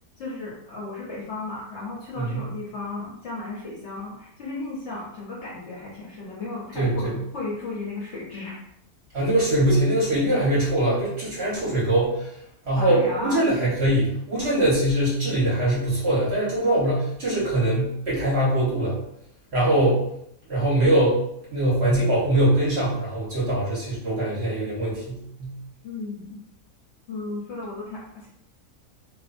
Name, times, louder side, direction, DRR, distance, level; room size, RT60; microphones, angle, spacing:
voice 1, 0.2-8.6 12.8-13.4 25.8-26.4 27.1-28.3, left 2 dB, 60° left, -6 dB, 0.8 m, -34 dB
voice 2, 6.7-7.1 9.1-12.3 12.6-19.0 19.5-20.0 20.5-21.2 21.5-25.5, right 1 dB, 50° right, -7 dB, 0.9 m, -22 dB
2.5 x 2.1 x 2.5 m, 0.75 s
omnidirectional pair, 1.7 m